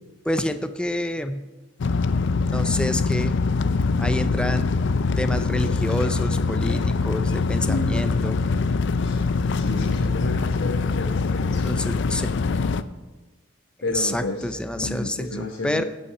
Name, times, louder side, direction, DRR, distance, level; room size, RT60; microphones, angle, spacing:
voice 1, 0.2-1.5 2.5-3.4 4.0-4.7 5.2-8.4 11.6-12.3 13.9-15.8, left 1 dB, 5° left, 9 dB, 0.4 m, -28 dB
sound 1, 1.8-12.8, left 4 dB, 60° left, 0.4 m, -23 dB
voice 2, 7.7-8.3 9.0-9.2 9.5-11.8 13.8-15.8, left 1 dB, 80° left, -1 dB, 1.3 m, -31 dB
16.5 x 5.6 x 5.5 m, 1.2 s
head